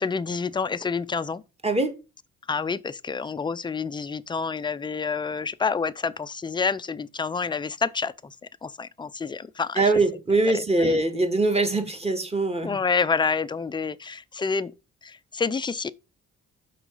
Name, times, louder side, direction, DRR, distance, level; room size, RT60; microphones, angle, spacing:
voice 1, 0.0-1.4 2.5-8.4 8.6-9.9 10.5-11.0 12.6-14.7 15.0-15.9, left 5 dB, 15° left, 0.4 m, -28 dB
voice 2, 9.8-12.7, right 2 dB, 20° right, 1.8 m, -22 dB
6.0 x 4.7 x 5.4 m
cardioid pair, 90°, 30 cm